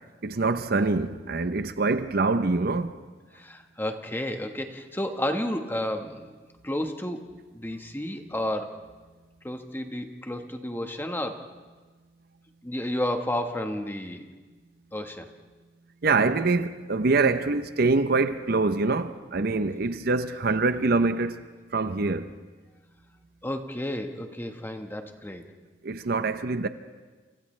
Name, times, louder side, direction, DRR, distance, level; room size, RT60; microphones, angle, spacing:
voice 1, 0.2-2.9 16.0-21.4 21.7-22.3 25.8-26.7, right 3 dB, 55° right, 0.7 m, -24 dB
voice 2, 3.3-6.3 6.6-7.3 7.5-8.7 9.4-11.5 12.6-14.2 14.9-15.3 23.4-25.4, left 1 dB, 10° left, 1.4 m, -31 dB
29.0 x 28.5 x 3.3 m
head